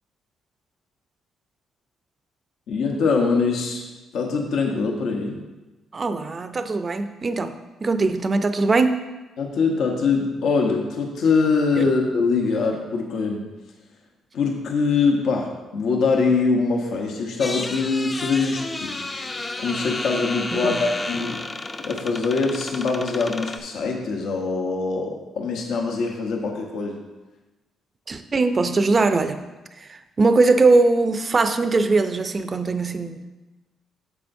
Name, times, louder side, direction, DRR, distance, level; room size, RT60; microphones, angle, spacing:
voice 1, 2.7-3.8 4.1-5.4 9.4-13.5 14.3-19.3 19.6-21.5 21.8-27.0, left 4 dB, 75° left, 1 dB, 0.9 m, -23 dB
voice 2, 5.9-7.6 7.8-9.0 11.8-11.9 20.5-20.9 28.1-29.4 29.8-33.4, right 3 dB, 35° right, 9 dB, 0.5 m, -21 dB
sound 1, 17.4-23.6, left 2 dB, 25° left, 0.5 m, -32 dB
9.5 x 6.8 x 2.6 m, 1.1 s
cardioid pair, 90°, 0 cm